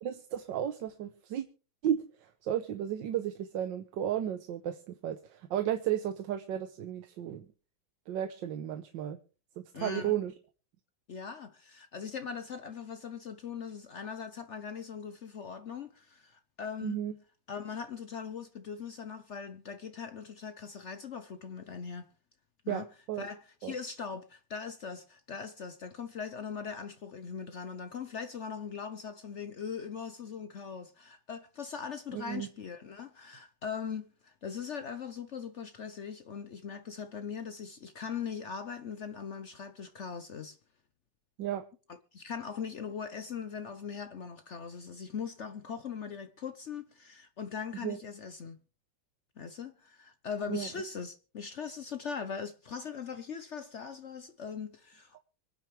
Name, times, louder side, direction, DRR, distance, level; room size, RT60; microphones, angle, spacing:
voice 1, 0.0-1.4 1.8-7.4 8.1-9.2 9.6-10.3 16.8-17.1 22.7-23.3 23.6-23.7 32.1-32.5 41.4-41.6 47.8-48.0 50.5-50.7, right 10 dB, 65° right, 1.5 m, -34 dB
voice 2, 9.7-10.2 11.1-17.0 17.5-22.1 22.6-22.9 23.2-40.6 42.1-48.6 49.4-55.2, left 6 dB, 75° left, 0.6 m, -40 dB
25.5 x 9.1 x 3.3 m
omnidirectional pair, 2.3 m